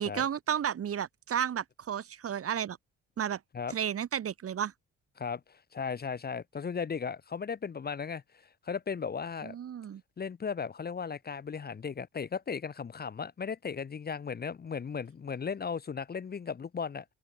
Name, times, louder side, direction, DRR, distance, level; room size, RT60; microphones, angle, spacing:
voice 1, 0.0-2.8 3.2-3.4 3.7-4.7 9.4-10.0, right 9 dB, 50° right, 1.3 m, -32 dB
voice 2, 5.2-8.2 8.6-9.5 10.2-17.0, left 6 dB, 30° left, 0.9 m, -36 dB
cardioid pair, 90°, 30 cm